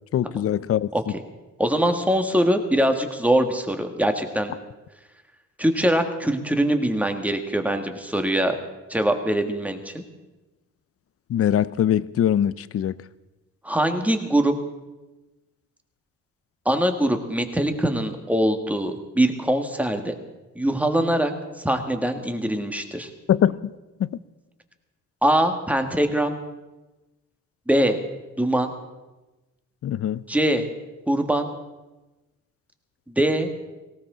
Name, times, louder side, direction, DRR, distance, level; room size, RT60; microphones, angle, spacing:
voice 1, 0.1-0.9 11.3-12.9 23.3-23.7 24.0-24.2 29.8-30.2, left 10 dB, 50° left, 18 dB, 0.6 m, -22 dB
voice 2, 1.6-4.5 5.6-8.6 8.9-10.0 13.6-14.5 16.7-20.2 20.6-21.3 21.6-23.1 25.2-26.4 27.7-28.0 28.4-28.7 30.3-30.7 31.1-31.5 33.1-33.7, right 1 dB, 5° right, 6 dB, 1.7 m, -22 dB
18.5 x 17.5 x 3.9 m, 1.1 s
cardioid pair, 90°, 30 cm